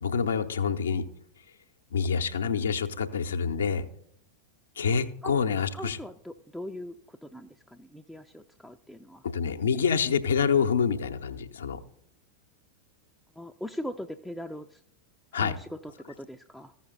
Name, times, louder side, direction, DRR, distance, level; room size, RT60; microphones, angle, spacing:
voice 1, 0.0-1.0 1.9-3.8 4.8-6.0 9.2-11.8 15.3-15.6, left 6 dB, 65° left, 9 dB, 0.6 m, -27 dB
voice 2, 5.7-9.2 13.4-14.8 15.3-16.7, equal, ahead, 4 dB, 0.4 m, -40 dB
14.5 x 5.7 x 3.8 m, 0.72 s
figure-of-eight pair, 90°, 0 cm